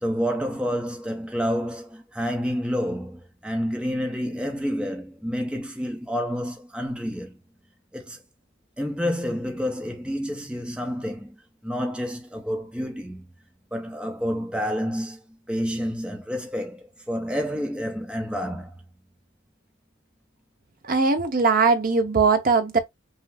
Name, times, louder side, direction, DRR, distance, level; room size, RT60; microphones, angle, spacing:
voice 1, 0.0-7.4 7.9-8.2 8.8-13.3 13.7-18.7, equal, 5° right, 0.6 m, -29 dB
voice 2, 20.8-22.8, right 4 dB, 45° right, 0.9 m, -20 dB
5.6 x 2.0 x 3.4 m
head